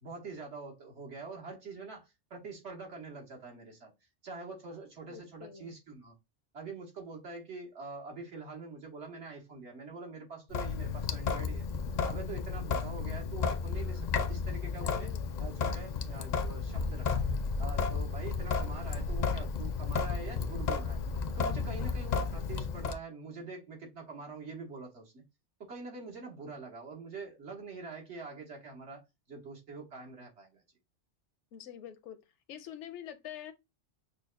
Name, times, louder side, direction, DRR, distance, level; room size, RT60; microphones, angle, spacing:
voice 1, 0.0-3.9 4.2-6.2 6.5-11.7 12.0-15.1 15.4-17.2 17.6-21.0 21.4-25.2 25.6-30.6, right 3 dB, 75° right, 1.7 m, -45 dB
voice 2, 5.1-5.7 14.8-15.3 31.5-32.2 32.5-33.5, left 10 dB, 80° left, 0.9 m, -45 dB
Sink (filling or washing) / Drip, 10.5-23.0, left 5 dB, 60° left, 0.5 m, -33 dB
6.2 x 2.2 x 2.4 m
omnidirectional pair, 1.2 m